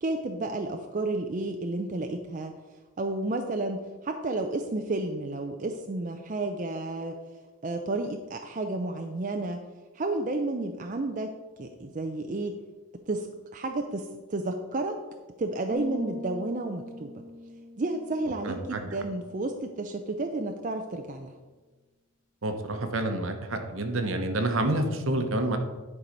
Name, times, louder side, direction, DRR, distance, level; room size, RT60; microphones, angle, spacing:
voice 1, 0.0-2.5 3.0-7.2 7.6-9.6 9.9-12.5 13.1-13.3 13.5-15.0 15.4-17.1 17.8-21.3, right 2 dB, 35° right, 5 dB, 0.5 m, -31 dB
sound 1, 15.7-19.4, left 2 dB, 20° right, 1.2 m, -42 dB
voice 2, 18.4-18.8 22.4-25.6, right 1 dB, 65° right, 6 dB, 1.0 m, -28 dB
10.0 x 4.7 x 5.3 m, 1.3 s
head